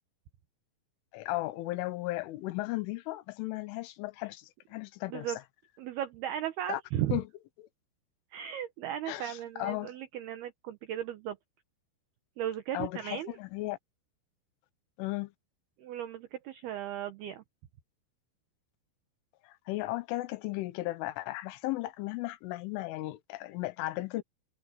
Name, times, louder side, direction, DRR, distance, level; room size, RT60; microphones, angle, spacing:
voice 1, 1.1-5.4 6.7-6.8 7.1-7.3 7.6-7.7 9.1-9.9 12.7-13.8 15.0-15.3 19.4-24.2, left 18 dB, 80° left, 3.5 m, -35 dB
voice 2, 5.8-7.2 8.3-11.4 12.4-13.4 15.8-17.4, right 11 dB, 70° right, 2.7 m, -36 dB
omnidirectional pair, 5.8 m